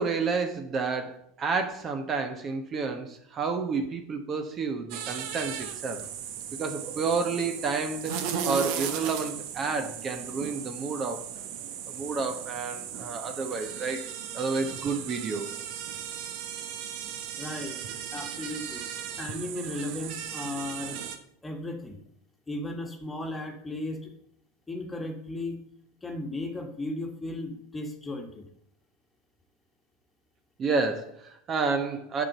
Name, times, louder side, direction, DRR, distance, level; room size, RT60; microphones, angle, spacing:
voice 1, 0.0-6.0 6.6-11.2 11.9-14.1 14.3-15.5 30.6-32.2, right 4 dB, 35° right, 6 dB, 1.0 m, -30 dB
sound 1, 4.9-21.2, right 8 dB, 60° right, 0.9 m, -36 dB
voice 2, 17.4-18.9 19.2-21.0 21.4-22.0 22.5-24.1 24.7-25.6 26.0-28.5, left 1 dB, 15° left, 4 dB, 1.6 m, -35 dB
7.5 x 4.5 x 6.7 m, 0.67 s
hypercardioid pair, 95°, 0 cm